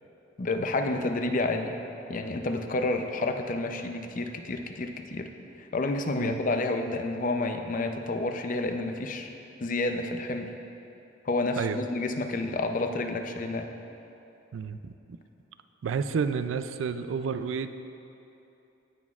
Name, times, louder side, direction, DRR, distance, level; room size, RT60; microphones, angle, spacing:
voice 1, 0.4-1.8 2.1-5.3 5.7-9.3 9.6-10.5 11.3-13.7, left 2 dB, 45° left, 6 dB, 0.5 m, -29 dB
voice 2, 14.5-14.9 15.8-17.7, right 6 dB, 80° right, 10 dB, 0.3 m, -30 dB
16.0 x 6.1 x 2.4 m, 2.9 s
head